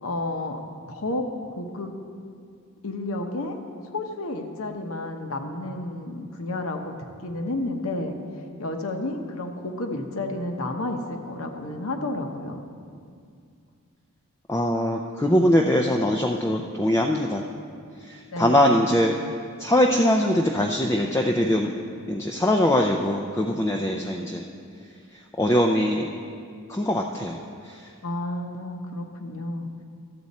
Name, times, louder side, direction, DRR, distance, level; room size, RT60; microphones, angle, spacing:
voice 1, 0.0-0.6 0.9-1.3 1.5-2.0 2.8-3.6 3.9-7.0 7.2-8.2 8.6-12.6 18.3-18.8 23.9-24.0 28.0-29.7, left 2 dB, 65° left, 4 dB, 0.9 m, -31 dB
voice 2, 14.5-17.4 18.0-19.2 19.6-21.7 22.1-24.4 25.4-26.1 26.7-27.9, left 1 dB, 10° left, 1 dB, 0.3 m, -22 dB
13.0 x 7.7 x 4.1 m, 2.3 s
head